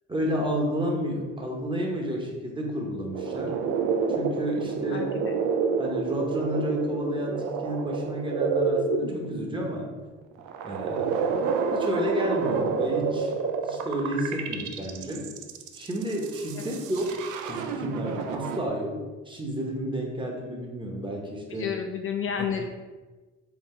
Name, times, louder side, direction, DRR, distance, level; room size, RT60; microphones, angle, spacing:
voice 1, 0.1-3.6 4.1-5.1 5.8-9.9 10.6-11.2 11.7-13.3 13.6-15.3 15.7-21.7 22.4-22.5, equal, 15° right, 0 dB, 0.8 m, -31 dB
sound 1, 3.1-9.7 10.4-18.7, right 5 dB, 80° right, 0.5 m, -29 dB
voice 2, 4.9-5.4 16.6-16.7 21.5-22.6, left 7 dB, 45° left, 4 dB, 0.4 m, -31 dB
4.0 x 2.3 x 4.2 m, 1.3 s
cardioid pair, 90°, 30 cm